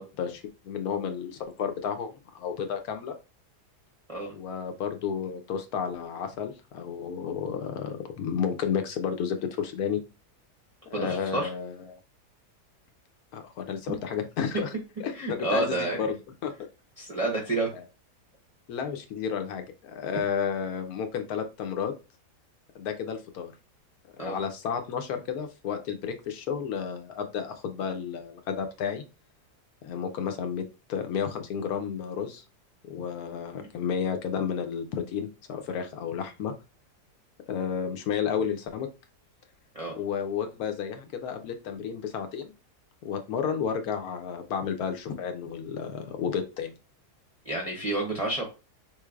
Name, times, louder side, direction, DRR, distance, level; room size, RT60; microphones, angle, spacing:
voice 1, 0.0-3.1 4.3-10.0 10.9-12.0 13.3-14.7 15.0-16.2 16.4-16.5 18.7-21.9 22.7-23.5 24.2-29.0 29.8-32.4 32.9-36.5 37.5-38.9 40.0-42.5 43.0-46.7, left 7 dB, 75° left, 7 dB, 1.0 m, -32 dB
voice 2, 10.9-11.5 13.9-14.0 15.2-16.0 17.0-17.7 24.2-24.4 33.6-33.7 39.7-40.0 47.4-48.4, right 2 dB, 35° right, -2 dB, 0.6 m, -29 dB
3.8 x 3.2 x 2.3 m, 0.30 s
omnidirectional pair, 1.7 m